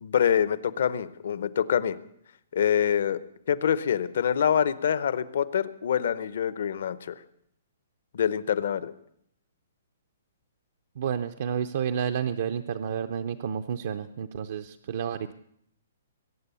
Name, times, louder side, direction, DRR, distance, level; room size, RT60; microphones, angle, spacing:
voice 1, 0.0-2.0 2.5-3.2 3.5-7.2 8.1-8.9, left 8 dB, 55° left, 16 dB, 0.8 m, -25 dB
voice 2, 11.0-15.3, right 8 dB, 45° right, 7 dB, 0.6 m, -30 dB
22.0 x 9.0 x 6.9 m, 0.72 s
hypercardioid pair, 175°, 0 cm